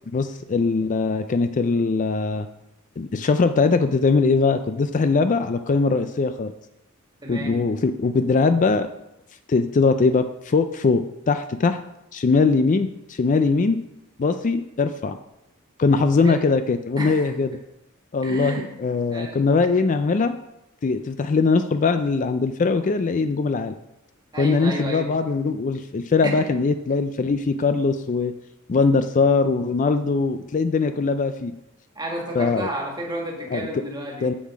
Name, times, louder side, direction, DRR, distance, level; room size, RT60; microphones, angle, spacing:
voice 1, 0.1-2.5 3.0-6.5 7.3-8.9 9.5-11.8 12.1-13.8 14.2-15.2 15.8-17.5 18.1-20.4 20.8-23.7 24.4-28.3 28.7-31.5 32.3-32.7 33.5-33.6 34.2-34.3, left 4 dB, 35° left, 9 dB, 0.4 m, -21 dB
voice 2, 7.2-7.6 16.1-16.4 17.0-17.3 18.2-18.7 19.1-19.4 24.3-25.1 26.2-26.4 31.9-34.3, right 1 dB, 20° right, 0 dB, 1.7 m, -31 dB
7.4 x 7.1 x 4.8 m, 0.86 s
head